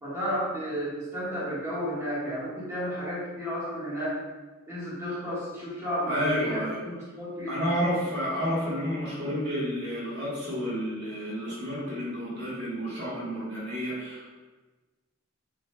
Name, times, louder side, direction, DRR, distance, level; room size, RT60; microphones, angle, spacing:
voice 1, 0.0-4.2 4.7-7.6, equal, 15° right, -10 dB, 1.4 m, -32 dB
voice 2, 6.0-6.8 7.5-14.3, equal, 55° right, -7 dB, 1.4 m, -30 dB
7.1 x 3.1 x 2.2 m, 1.2 s
head